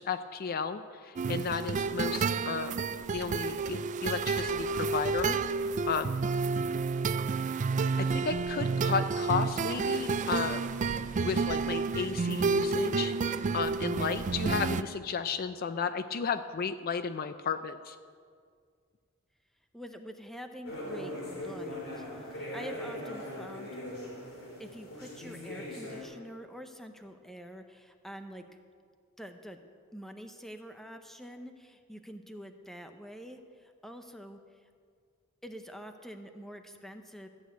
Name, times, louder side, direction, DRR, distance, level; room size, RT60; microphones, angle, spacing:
voice 1, 0.0-5.4 5.9-6.1 8.0-10.7 11.2-13.1 13.5-18.0, left 6 dB, 45° left, 11 dB, 0.4 m, -33 dB
sound 1, 1.2-14.8, right 4 dB, 35° right, 0.3 m, -30 dB
voice 2, 19.7-23.8 24.6-28.5 29.2-29.6 29.9-34.7 35.4-37.3, equal, ahead, 6 dB, 0.7 m, -46 dB
sound 2, 20.7-26.0, left 1 dB, 70° left, 3.8 m, -40 dB
14.0 x 6.4 x 9.2 m, 2.1 s
head